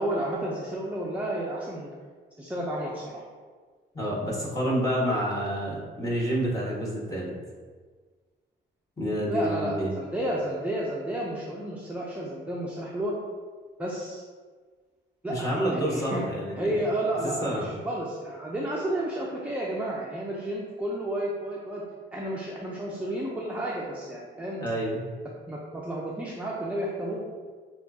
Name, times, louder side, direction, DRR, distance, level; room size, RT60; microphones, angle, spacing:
voice 1, 0.0-2.0 2.4-3.3 9.3-13.2 13.8-14.2 15.2-16.2 16.6-21.8 22.1-24.6 25.5-27.3, right 1 dB, 5° right, -5 dB, 0.6 m, -31 dB
voice 2, 3.9-7.3 9.0-9.9 15.3-16.7 17.2-17.7 24.6-25.0, equal, 15° left, -5 dB, 1.4 m, -28 dB
6.5 x 2.5 x 2.8 m, 1.5 s
cardioid pair, 90°, 20 cm